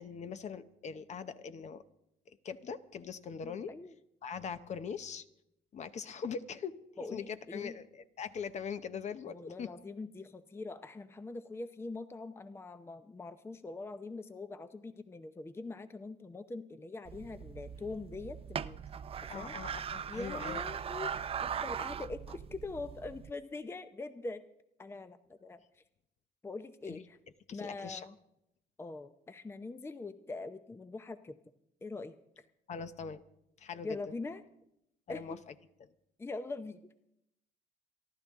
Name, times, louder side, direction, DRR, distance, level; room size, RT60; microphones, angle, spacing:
voice 1, 0.0-1.8 2.3-3.7 4.2-5.2 5.7-6.7 7.1-9.7 19.3-20.6 26.9-27.0 27.5-28.1 32.7-33.2 33.6-34.0 35.1-35.4 35.8-35.9, left 6 dB, 45° left, 11 dB, 0.8 m, -41 dB
voice 2, 3.4-3.9 7.0-7.7 9.2-18.8 19.2-19.6 20.1-24.4 24.8-25.6 26.4-27.2 27.5-28.2 28.8-31.4 31.8-32.4 33.8-34.4 35.1-35.4 36.2-36.9, left 3 dB, 15° left, 11 dB, 0.6 m, -43 dB
sound 1, 17.1-23.3, right 7 dB, 35° right, 0.5 m, -40 dB
28.5 x 11.5 x 3.6 m, 0.81 s
cardioid pair, 110°, 17 cm